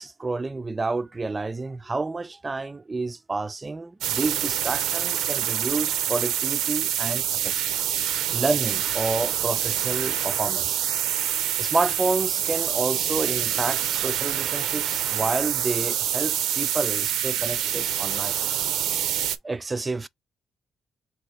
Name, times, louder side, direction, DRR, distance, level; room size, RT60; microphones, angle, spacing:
voice 1, 0.0-7.5 8.3-18.3 19.4-20.1, right 3 dB, 25° right, 0.3 m, -29 dB
sound 1, 4.0-19.4, right 11 dB, 85° right, 0.4 m, -26 dB
3.5 x 2.9 x 4.3 m
cardioid pair, 90°, 0 cm